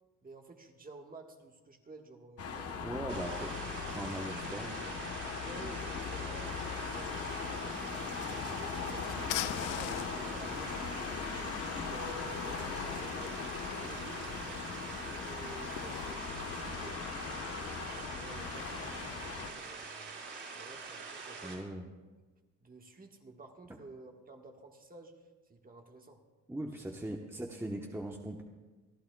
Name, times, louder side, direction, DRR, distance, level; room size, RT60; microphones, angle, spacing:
voice 1, 0.2-2.8 3.7-3.8 4.1-4.4 5.4-7.8 8.3-10.7 11.3-14.6 14.9-20.2 20.5-21.8 22.6-26.2, right 2 dB, 30° right, 2 dB, 1.5 m, -52 dB
sound 1, 2.4-19.5, left 5 dB, 50° left, 1.2 m, -39 dB
voice 2, 2.8-3.5 3.9-4.7 21.4-21.9 26.5-28.4, right 1 dB, 10° right, 1 dB, 1.1 m, -39 dB
sound 2, 3.1-21.6, right 4 dB, 50° right, 5.0 m, -45 dB
sound 3, 7.9-16.1, left 15 dB, 85° left, 0.5 m, -45 dB
27.5 x 11.5 x 2.3 m, 1.3 s
cardioid pair, 90°, 30 cm